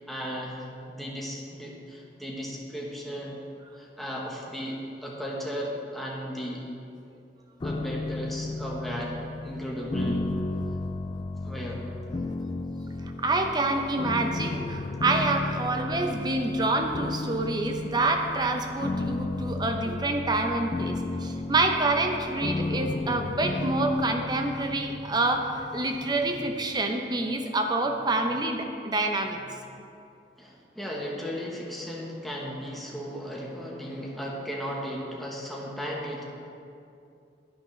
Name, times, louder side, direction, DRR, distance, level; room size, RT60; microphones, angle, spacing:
voice 1, 0.1-3.4 3.8-6.6 7.6-9.2 9.4-10.3 11.4-11.9 30.4-36.2, equal, ahead, -4 dB, 1.1 m, -35 dB
sound 1, 7.6-26.6, left 2 dB, 25° left, 0.3 m, -34 dB
voice 2, 13.2-29.4, right 2 dB, 25° right, 4 dB, 0.7 m, -27 dB
11.0 x 9.2 x 3.3 m, 2.6 s
head